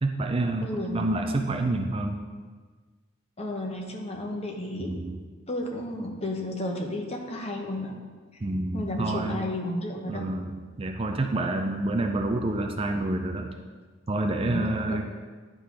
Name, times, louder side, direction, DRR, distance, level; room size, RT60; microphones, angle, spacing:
voice 1, 0.0-2.2 4.8-5.2 8.4-9.4 10.1-13.5 14.1-15.1, right 2 dB, 25° right, 4 dB, 0.4 m, -28 dB
voice 2, 0.6-1.1 3.4-4.9 5.5-8.0 8.7-10.3 14.4-15.1, left 1 dB, 30° left, 2 dB, 0.9 m, -32 dB
10.5 x 3.8 x 4.7 m, 1.5 s
head